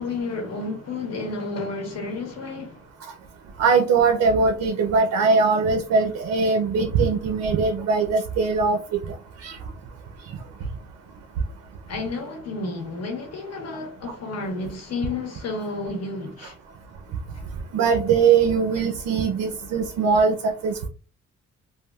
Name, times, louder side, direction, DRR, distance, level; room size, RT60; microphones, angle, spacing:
voice 1, 0.0-2.8 11.9-16.6 17.3-17.4, left 3 dB, 60° left, 0.9 m, -31 dB
voice 2, 3.6-9.1 9.4-9.6 17.7-20.9, right 5 dB, 70° right, 0.5 m, -21 dB
3.4 x 2.3 x 2.2 m
cardioid pair, 160°, 29 cm